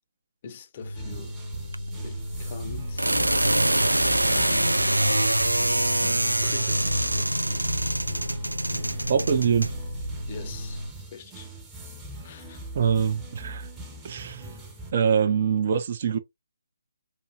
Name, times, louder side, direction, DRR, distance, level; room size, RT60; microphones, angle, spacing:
voice 1, 0.4-1.4 2.0-3.1 4.2-4.9 6.0-7.4 10.3-10.8 11.1-11.5 12.2-12.6, left 6 dB, 35° left, 0.6 m, -42 dB
sound 1, 0.8-10.9, right 1 dB, 90° right, 0.4 m, -25 dB
sound 2, 0.9-14.9, right 2 dB, 10° right, 0.8 m, -41 dB
voice 2, 9.1-9.7 12.7-13.7 14.0-14.5 14.9-16.2, right 7 dB, 40° right, 0.6 m, -24 dB
4.4 x 2.7 x 2.5 m
figure-of-eight pair, 145°, 0 cm